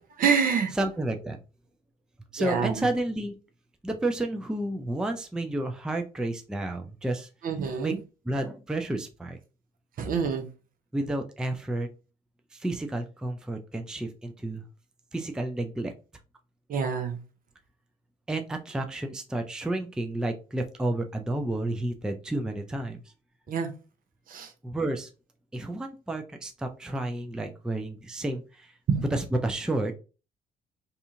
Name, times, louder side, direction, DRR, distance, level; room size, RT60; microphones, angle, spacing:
voice 1, 0.2-0.7 2.4-2.9 7.4-8.0 10.0-10.5 16.7-17.2 23.5-23.7 24.3-24.5 28.9-29.0, right 6 dB, 50° right, 0.7 m, -26 dB
voice 2, 0.7-1.4 2.3-3.3 3.8-7.3 7.8-7.9 8.2-9.4 10.9-11.9 12.5-14.6 15.1-15.9 18.3-23.0 24.6-25.1 25.5-28.7 29.1-29.9, right 1 dB, 5° right, 0.4 m, -31 dB
2.7 x 2.4 x 2.6 m
hypercardioid pair, 50°, 18 cm